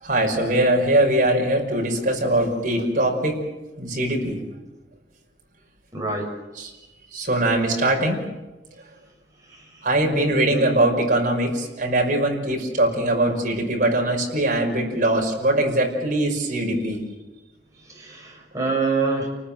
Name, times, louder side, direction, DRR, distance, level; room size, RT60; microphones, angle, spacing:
voice 1, 0.0-3.4 3.8-4.4 6.6-6.7 7.1-8.2 9.8-17.0, right 1 dB, 50° right, 0 dB, 5.8 m, -21 dB
voice 2, 5.9-6.3 9.5-9.6 17.9-19.3, right 4 dB, 20° right, -1 dB, 7.4 m, -25 dB
29.5 x 19.5 x 7.6 m, 1.1 s
head